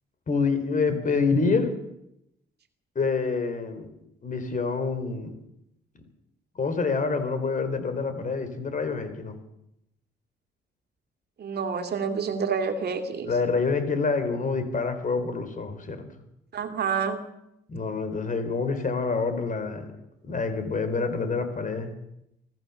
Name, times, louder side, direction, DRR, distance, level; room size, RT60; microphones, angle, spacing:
voice 1, 0.3-1.7 3.0-3.9 4.2-5.3 6.6-9.4 13.3-16.0 17.7-19.9 20.2-21.9, left 4 dB, 40° left, 9 dB, 4.0 m, -27 dB
voice 2, 11.4-13.3 16.5-17.2, right 6 dB, 55° right, 7 dB, 2.6 m, -28 dB
25.0 x 15.0 x 7.1 m, 0.83 s
cardioid pair, 90°, 20 cm